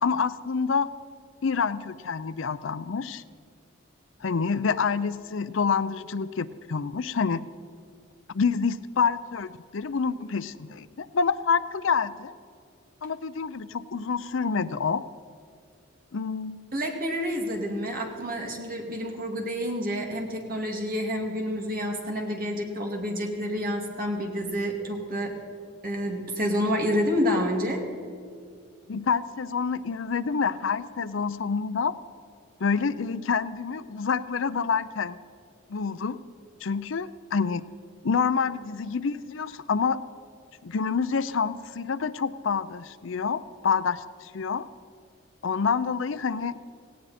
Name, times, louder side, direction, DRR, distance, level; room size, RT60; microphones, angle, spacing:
voice 1, 0.0-0.9 1.4-3.2 4.2-7.4 8.3-12.3 13.0-15.1 16.1-16.6 28.9-31.9 32.6-35.2 35.7-36.2 36.6-37.6 38.0-40.0 40.6-44.7 45.4-46.6, left 5 dB, 70° left, 15 dB, 0.5 m, -27 dB
voice 2, 16.7-25.3 25.8-27.8, equal, 45° right, 1 dB, 2.3 m, -28 dB
18.0 x 17.0 x 4.3 m, 2.3 s
head